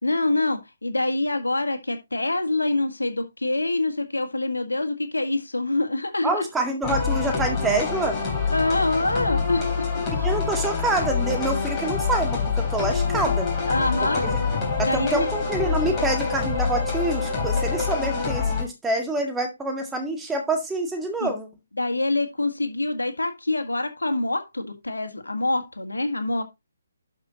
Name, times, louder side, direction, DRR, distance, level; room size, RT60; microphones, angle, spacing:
voice 1, 0.0-6.5 8.5-10.3 13.7-14.3 14.8-15.3 21.2-21.3 21.8-26.4, left 2 dB, 90° left, 1.7 m, -25 dB
voice 2, 6.2-8.2 10.2-13.5 14.0-14.4 14.8-21.5, right 2 dB, 10° right, 1.8 m, -26 dB
sound 1, 6.8-18.6, left 5 dB, 20° left, 3.6 m, -26 dB
12.0 x 5.3 x 2.9 m
figure-of-eight pair, 145°, 0 cm